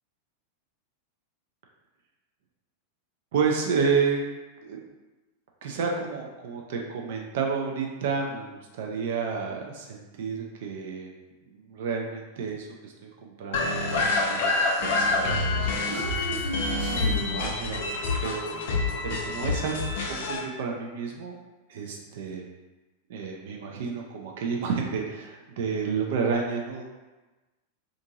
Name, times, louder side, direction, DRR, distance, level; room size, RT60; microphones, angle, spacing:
voice 1, 3.3-4.2 4.6-4.8 5.6-11.1 11.5-16.0 17.0-17.8 18.2-18.5 19.0-21.3 21.7-22.4 23.1-26.8, right 5 dB, 55° right, 0 dB, 0.4 m, -30 dB
sound 1, 13.5-20.4, left 3 dB, 55° left, 0.4 m, -27 dB
Human voice, 15.3-18.3, right 2 dB, 75° right, 1.1 m, -34 dB
2.6 x 2.5 x 2.7 m, 1.2 s
figure-of-eight pair, 90°, 0 cm